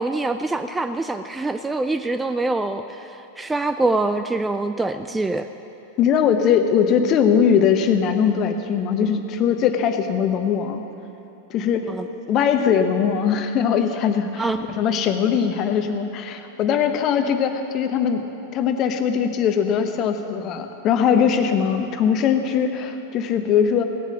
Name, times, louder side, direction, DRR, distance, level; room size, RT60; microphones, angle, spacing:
voice 1, 0.0-3.1 3.4-5.5 11.8-12.1 14.4-14.6, right 2 dB, 10° right, 9 dB, 0.4 m, -24 dB
voice 2, 6.0-10.8 11.5-11.9 12.3-14.5 14.8-18.2 18.5-23.8, left 7 dB, 35° left, 7 dB, 1.0 m, -20 dB
16.5 x 8.3 x 7.6 m, 3.0 s
figure-of-eight pair, 90°, 0 cm